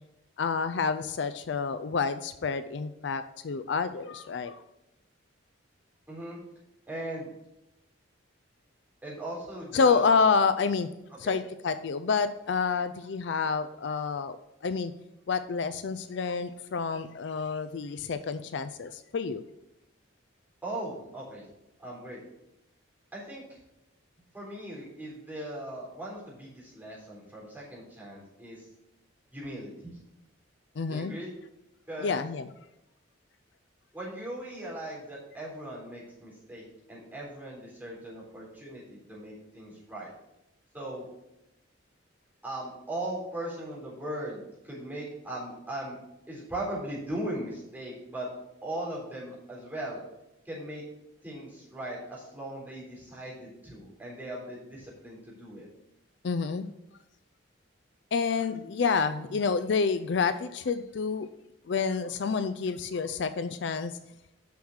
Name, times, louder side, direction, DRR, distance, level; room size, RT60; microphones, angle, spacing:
voice 1, 0.4-4.6 9.7-10.9 11.2-14.4 14.6-14.9 15.3-19.4 30.8-31.1 32.0-32.5 56.2-56.7 58.1-61.3 61.7-63.9, left 5 dB, 60° left, 11 dB, 0.4 m, -28 dB
voice 2, 6.1-6.4 6.9-7.3 9.0-10.0 11.2-11.4 20.6-21.4 21.8-22.2 23.1-23.4 24.3-28.7 29.3-30.0 30.9-31.3 31.9-32.2 33.9-36.6 36.9-40.1 40.7-41.1 42.4-46.0 46.3-48.3 48.6-50.0 50.5-50.8 51.2-55.7 58.5-58.6 59.2-59.4, right 1 dB, 10° right, -7 dB, 3.7 m, -39 dB
6.8 x 6.3 x 6.5 m, 0.90 s
head